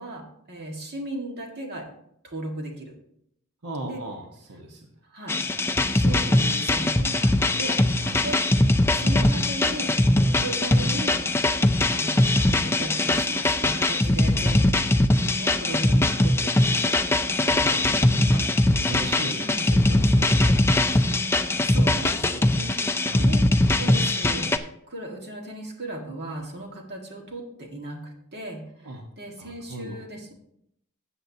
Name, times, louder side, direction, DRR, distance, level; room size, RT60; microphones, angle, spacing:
voice 1, 0.0-1.9 2.2-2.9 3.8-4.0 5.1-5.4 5.9-7.8 8.2-8.4 8.9-11.2 11.9-14.9 15.4-16.9 19.4-19.7 21.6-22.8 23.2-23.5 23.7-24.5 24.9-28.9 29.2-30.3, right 1 dB, 50° right, 1 dB, 1.7 m, -36 dB
voice 2, 3.6-4.9 8.0-8.2 14.4-14.5 17.4-21.2 23.0-23.3 28.8-29.1 29.4-30.0, right 1 dB, 85° right, 1 dB, 1.2 m, -38 dB
sound 1, 5.3-24.6, left 1 dB, 10° left, 0.4 m, -21 dB
13.0 x 7.8 x 2.8 m, 0.74 s
head